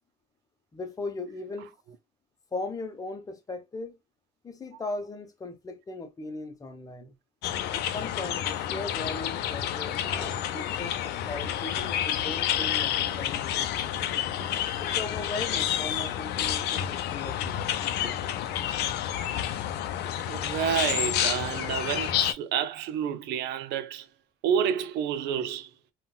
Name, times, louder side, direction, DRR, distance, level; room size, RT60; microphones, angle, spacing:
voice 1, 0.7-1.7 2.5-4.0 4.4-7.1 7.7-10.0 10.5-14.0 14.8-17.7, left 3 dB, 20° left, 0.7 m, -38 dB
sound 1, 7.4-22.3, left 10 dB, 80° left, 0.5 m, -29 dB
sound 2, 10.0-10.8 11.3-12.0 12.5-15.9 16.3-16.8 17.5-18.8 19.6-19.9 20.2-20.3, left 1 dB, ahead, 1.1 m, -49 dB
voice 2, 19.2-19.6 20.3-24.1 24.4-25.7, right 8 dB, 85° right, 0.5 m, -29 dB
3.8 x 2.3 x 2.2 m
cardioid pair, 110°, 17 cm